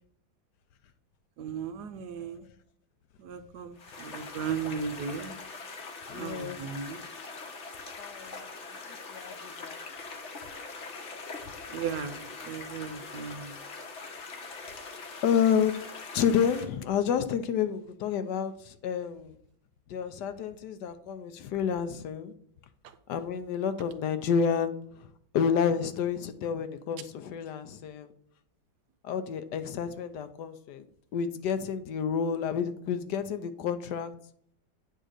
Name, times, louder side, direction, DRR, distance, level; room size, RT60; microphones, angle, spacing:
voice 1, 1.4-2.5 3.2-5.4 6.1-7.0 11.7-13.6 22.8-22.9, right 6 dB, 70° right, 10 dB, 1.0 m, -36 dB
sound 1, 3.8-16.6, left 4 dB, 45° left, 1.1 m, -42 dB
voice 2, 6.1-6.6 8.0-8.4 9.1-9.8 15.2-15.8 16.1-19.4 19.9-22.3 23.1-24.8 25.3-28.1 29.0-30.8 31.1-34.1, left 7 dB, 70° left, 11 dB, 1.1 m, -29 dB
9.1 x 3.7 x 6.5 m, 0.64 s
omnidirectional pair, 2.2 m